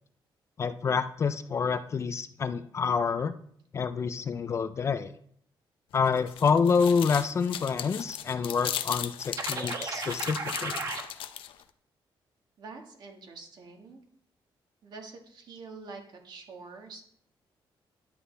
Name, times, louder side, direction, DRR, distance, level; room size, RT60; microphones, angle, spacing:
voice 1, 0.6-3.3 3.7-5.1 5.9-10.8, left 5 dB, 35° left, 11 dB, 0.4 m, -27 dB
sound 1, 5.9-11.6, left 10 dB, 90° left, 0.6 m, -37 dB
sound 2, 9.4-11.0, right 4 dB, 40° right, 1.1 m, -34 dB
voice 2, 12.6-14.0 14.8-17.0, right 4 dB, 55° right, 2 dB, 1.7 m, -46 dB
11.0 x 8.5 x 3.4 m, 0.63 s
wide cardioid pair, 165°, 9 cm